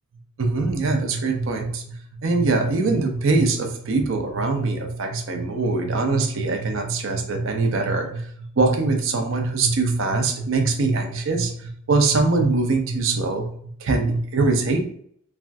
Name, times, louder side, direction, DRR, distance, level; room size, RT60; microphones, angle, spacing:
voice 1, 0.4-2.0 2.2-8.3 8.6-13.5 13.8-14.8, right 3 dB, 65° right, 4 dB, 0.5 m, -22 dB
3.3 x 2.5 x 2.3 m, 0.62 s
head